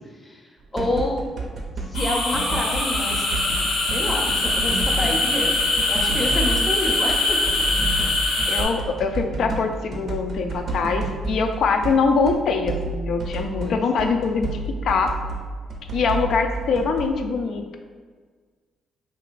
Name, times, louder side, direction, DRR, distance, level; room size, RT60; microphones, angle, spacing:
voice 1, 0.2-1.2 1.9-5.5 5.9-7.4 13.6-13.7, left 1 dB, 20° left, 0 dB, 0.6 m, -28 dB
sound 1, 0.8-3.6 3.9-12.0 12.3-17.1, right 2 dB, 55° right, 0.5 m, -30 dB
sound 2, 1.9-8.6, left 2 dB, 85° left, 0.7 m, -23 dB
voice 2, 8.5-15.1 15.9-17.8, left 4 dB, 70° left, 5 dB, 0.3 m, -23 dB
2.8 x 2.4 x 3.1 m, 1.5 s
cardioid pair, 90°, 0 cm